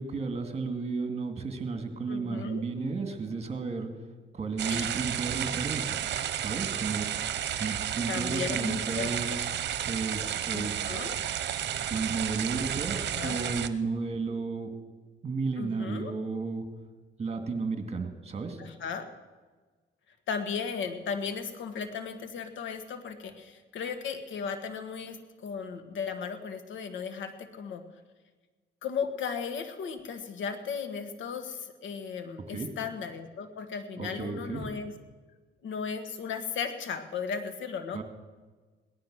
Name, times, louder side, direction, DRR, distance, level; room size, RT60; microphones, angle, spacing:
voice 1, 0.0-3.9 4.3-6.0 6.4-7.3 7.6-9.4 9.8-10.9 11.9-14.7 15.2-16.7 17.2-18.6 32.5-32.7 34.0-34.7 37.9-38.0, right 4 dB, 35° right, 6 dB, 2.4 m, -33 dB
voice 2, 2.1-2.6 4.7-4.9 8.1-9.4 10.5-11.2 13.1-13.5 15.6-16.1 18.6-19.1 20.3-27.8 28.8-34.9 35.6-38.0, left 6 dB, 70° left, 9 dB, 1.7 m, -36 dB
sound 1, 4.6-13.7, right 10 dB, 60° right, 1.0 m, -32 dB
18.0 x 11.5 x 6.4 m, 1.4 s
cardioid pair, 90°, 20 cm